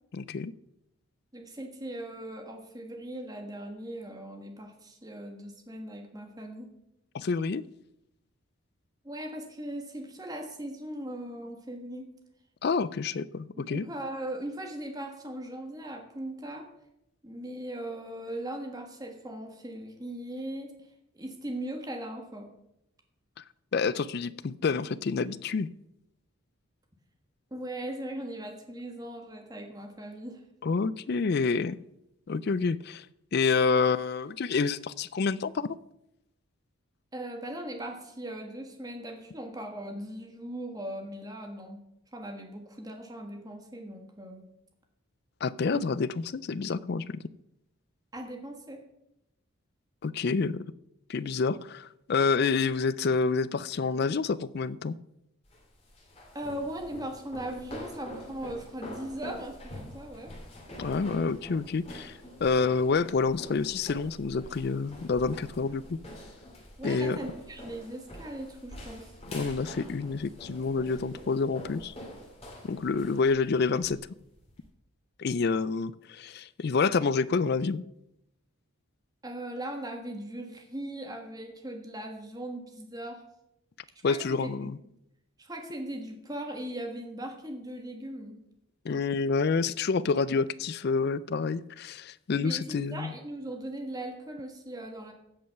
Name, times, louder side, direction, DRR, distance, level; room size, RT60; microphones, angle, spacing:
voice 1, 0.1-0.5 7.1-7.6 12.6-13.8 23.7-25.7 30.6-31.8 32.3-33.1 33.3-35.8 45.4-47.2 50.0-50.6 51.1-55.0 60.8-62.1 62.4-66.0 66.8-67.2 69.3-71.9 72.7-74.0 75.2-77.8 84.0-84.8 88.8-93.1, left 4 dB, 45° left, 0.4 m, -28 dB
voice 2, 1.3-6.7 9.0-12.1 13.6-16.7 17.2-20.7 21.1-22.5 27.5-30.4 37.1-41.8 42.1-44.5 45.7-45.8 48.1-48.8 56.3-60.3 66.8-69.1 79.2-83.2 84.1-84.7 85.4-88.4 92.4-95.1, right 1 dB, 15° right, 1.4 m, -39 dB
sound 1, 55.4-74.7, equal, 30° left, 2.7 m, -45 dB
15.5 x 5.4 x 5.8 m
head